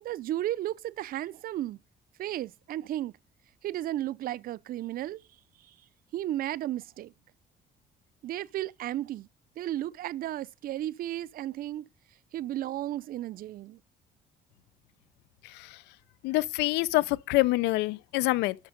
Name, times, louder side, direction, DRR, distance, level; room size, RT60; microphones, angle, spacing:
voice 1, 0.0-1.8 2.2-3.1 3.6-5.2 6.1-7.1 8.2-9.3 9.6-11.8 12.3-13.8, right 13 dB, 60° right, 0.5 m, -34 dB
voice 2, 16.2-18.6, left 19 dB, 90° left, 0.6 m, -26 dB
12.0 x 6.1 x 5.1 m
cardioid pair, 110°, 17 cm